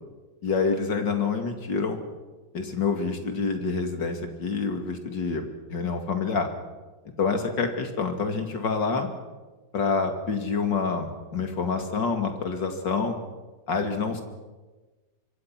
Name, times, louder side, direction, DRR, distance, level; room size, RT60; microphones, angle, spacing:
voice 1, 0.4-2.0 2.5-6.5 7.2-9.1 9.7-13.2 13.7-14.2, left 4 dB, 75° left, 5 dB, 3.1 m, -27 dB
26.0 x 23.5 x 6.0 m, 1.2 s
omnidirectional pair, 2.0 m